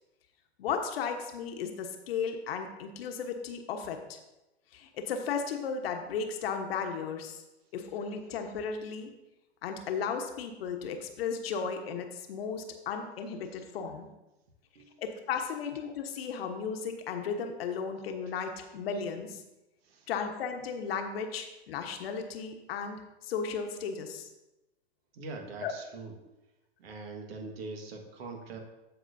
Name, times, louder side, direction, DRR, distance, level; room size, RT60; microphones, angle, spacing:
voice 1, 0.6-4.2 4.7-7.4 7.7-9.1 9.6-14.1 15.0-19.4 20.1-24.3 25.6-25.7, left 6 dB, 65° left, 5 dB, 1.2 m, -35 dB
voice 2, 25.1-26.1 26.8-28.6, right 3 dB, 65° right, 3 dB, 1.7 m, -42 dB
14.0 x 4.8 x 2.7 m, 0.99 s
hypercardioid pair, 115°, 33 cm